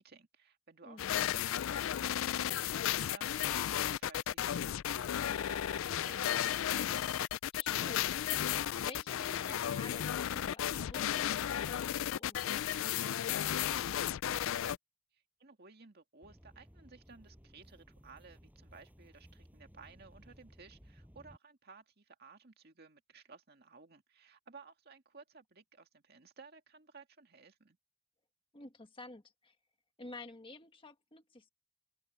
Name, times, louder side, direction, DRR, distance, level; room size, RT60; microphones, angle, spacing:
voice 1, 0.0-1.4 1.7-2.7 2.9-7.0 15.1-27.8, right 4 dB, 50° right, 2.1 m, -57 dB
voice 2, 0.8-1.3 7.5-13.9 28.5-29.6 30.0-31.5, left 2 dB, 25° left, 1.5 m, -52 dB
sound 1, 1.0-14.8, left 10 dB, 70° left, 0.4 m, -34 dB
sound 2, 16.2-21.4, equal, 10° right, 7.5 m, -59 dB
open air
head